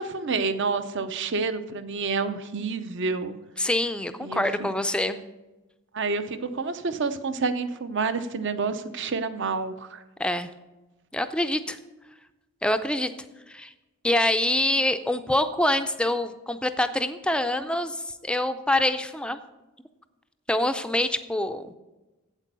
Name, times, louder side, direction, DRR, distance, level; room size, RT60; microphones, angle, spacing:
voice 1, 0.0-3.4 4.2-4.7 5.9-10.0, right 4 dB, 55° right, 11 dB, 0.7 m, -29 dB
voice 2, 3.6-5.2 10.2-10.5 11.1-11.8 12.6-13.1 13.5-13.7 14.0-19.4 20.5-21.7, left 1 dB, 5° left, 10 dB, 0.4 m, -25 dB
8.3 x 8.2 x 6.8 m, 1.1 s
head